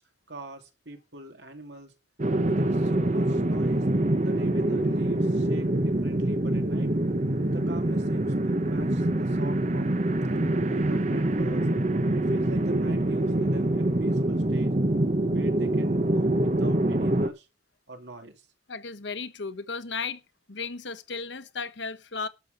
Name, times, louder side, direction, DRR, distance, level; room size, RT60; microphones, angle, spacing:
voice 1, 0.3-1.9 2.4-3.9 4.2-6.9 7.5-9.9 10.3-11.7 12.1-14.7 15.2-17.5 17.9-18.5, right 2 dB, 80° right, 2.7 m, -44 dB
sound 1, 2.2-17.3, right 1 dB, 40° right, 0.9 m, -25 dB
voice 2, 18.7-20.2 20.5-22.3, left 4 dB, 85° left, 1.1 m, -35 dB
12.0 x 5.9 x 7.0 m
head